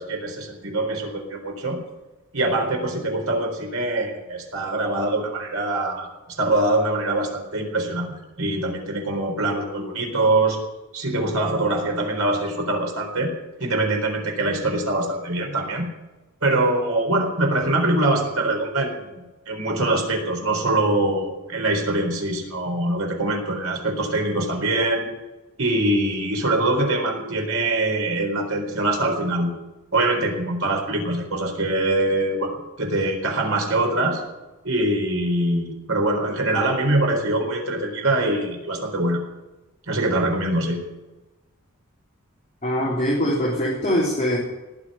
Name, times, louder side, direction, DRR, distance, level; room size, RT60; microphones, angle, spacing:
voice 1, 0.0-1.8 2.3-6.1 6.4-10.6 10.9-13.3 13.6-15.9 16.4-25.1 25.6-29.5 29.9-34.2 34.6-39.2 39.9-40.8, right 2 dB, 75° right, 2 dB, 4.1 m, -23 dB
voice 2, 42.6-44.4, equal, 35° left, -5 dB, 3.4 m, -22 dB
19.0 x 6.7 x 10.0 m, 1.1 s
head